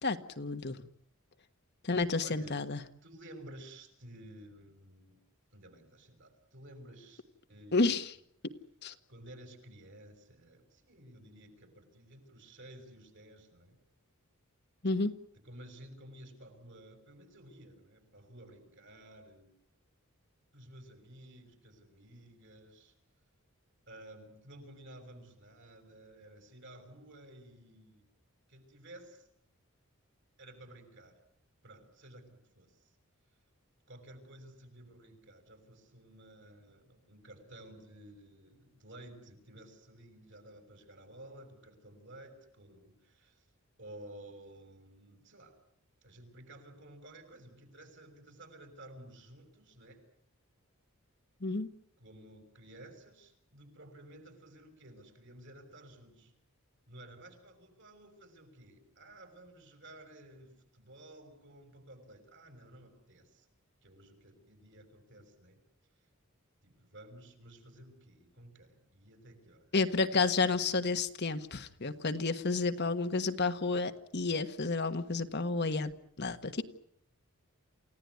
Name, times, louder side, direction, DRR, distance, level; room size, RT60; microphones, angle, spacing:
voice 1, 0.0-0.8 1.8-2.8 7.7-8.1 8.8-8.9 14.8-15.1 51.4-51.7 69.7-76.6, left 3 dB, 50° left, 8 dB, 1.5 m, -31 dB
voice 2, 2.2-2.6 3.0-5.2 5.5-7.2 7.5-7.9 9.1-13.8 15.3-19.6 20.5-22.9 23.9-28.0 28.5-29.3 30.4-31.2 31.6-32.9 33.9-43.5 43.8-45.6 46.0-50.0 52.0-56.3 56.9-63.5 63.8-65.6 66.6-69.8 70.1-70.2 70.4-70.7, right 1 dB, 55° right, 6 dB, 6.5 m, -53 dB
28.5 x 17.0 x 9.6 m, 0.69 s
head